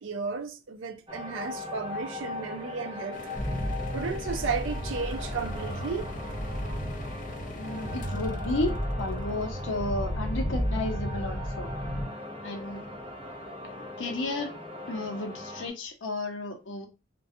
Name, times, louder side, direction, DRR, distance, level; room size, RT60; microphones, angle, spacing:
voice 1, 0.0-3.2 3.9-6.1, right 5 dB, 80° right, 0.4 m, -34 dB
sound 1, 1.1-15.7, left 2 dB, 25° right, 0.6 m, -40 dB
sound 2, 3.1-10.0, left 3 dB, 40° left, 0.3 m, -45 dB
sound 3, 3.3-12.0, equal, 5° left, 0.9 m, -33 dB
voice 2, 7.5-11.7 12.4-12.8 13.6-14.6 14.9-16.9, left 2 dB, 80° left, 0.6 m, -33 dB
2.4 x 2.2 x 2.5 m
head